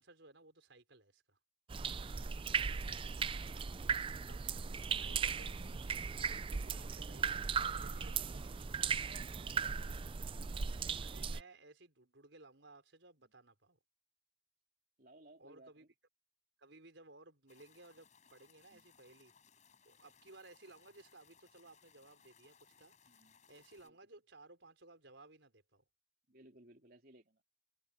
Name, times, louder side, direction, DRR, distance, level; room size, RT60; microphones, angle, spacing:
voice 1, 0.0-1.4 4.3-4.4 4.9-5.6 6.2-7.4 7.8-8.2 11.0-13.8 15.4-15.8 16.6-19.3 19.8-23.0 23.5-25.8, right 2 dB, 70° right, 4.6 m, -59 dB
sound 1, 1.7-11.4, right 6 dB, 25° right, 0.4 m, -37 dB
voice 2, 4.5-5.2 8.1-8.6 8.9-10.5 13.2-13.3 15.0-15.9 18.7-18.9 23.0-23.4 23.8-24.0 26.3-27.4, right 1 dB, 50° right, 3.4 m, -63 dB
sound 2, 17.5-23.9, left 6 dB, 40° left, 6.6 m, -67 dB
head